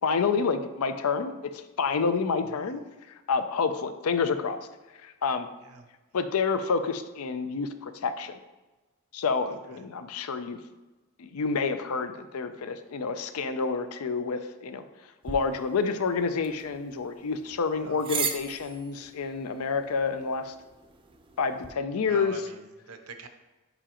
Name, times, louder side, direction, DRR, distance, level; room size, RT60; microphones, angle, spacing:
voice 1, 0.0-2.8 3.3-4.6 5.0-5.5 6.1-8.4 9.1-10.6 11.2-14.8 15.2-20.5 21.4-22.3, left 5 dB, 85° left, 10 dB, 0.5 m, -28 dB
sound 1, 15.2-21.7, right 6 dB, 25° right, 0.4 m, -39 dB
voice 2, 17.8-18.2 22.1-23.3, right 5 dB, 90° right, 7 dB, 0.7 m, -44 dB
6.9 x 4.9 x 2.9 m, 1.2 s
head